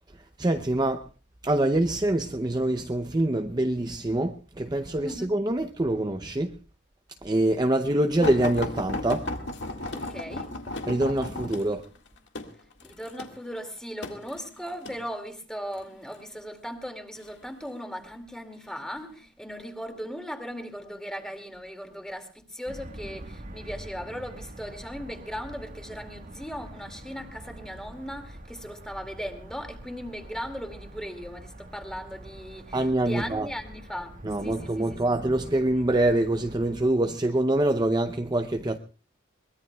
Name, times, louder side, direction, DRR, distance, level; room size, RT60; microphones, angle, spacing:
voice 1, 0.4-1.1 1.4-6.6 7.2-9.3 10.9-11.8 32.7-33.5 34.2-38.8, right 1 dB, 20° right, 0.6 m, -25 dB
sound 1, 8.2-15.0 15.8-16.2 17.1-17.8 18.5-18.7 19.1-19.2, left 2 dB, 65° left, 1.9 m, -35 dB
voice 2, 9.9-10.5 12.8-34.1 34.4-34.8, equal, 5° left, 2.2 m, -38 dB
sound 2, 22.7-36.8, right 1 dB, 45° right, 1.5 m, -45 dB
23.0 x 20.5 x 2.3 m
head